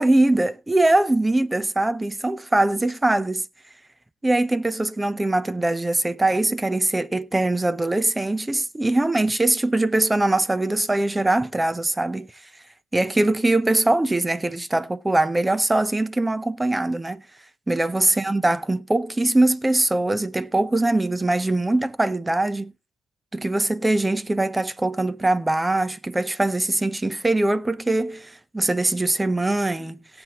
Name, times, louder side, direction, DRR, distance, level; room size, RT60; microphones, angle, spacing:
voice 1, 0.0-3.5 4.2-12.3 12.9-17.2 17.7-22.7 23.3-30.2, right 2 dB, 15° right, 0.7 m, -22 dB
17.5 x 7.9 x 3.0 m
cardioid pair, 90°, 0 cm